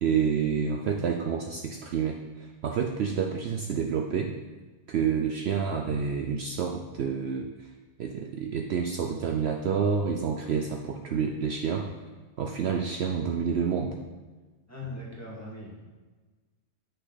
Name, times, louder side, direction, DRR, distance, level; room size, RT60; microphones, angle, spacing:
voice 1, 0.0-4.3 4.9-7.5 8.0-11.9 12.4-13.9, right 6 dB, 65° right, 3 dB, 0.8 m, -28 dB
voice 2, 14.7-15.9, left 2 dB, 10° left, -5 dB, 1.8 m, -40 dB
8.7 x 6.2 x 4.0 m, 1.3 s
omnidirectional pair, 1.3 m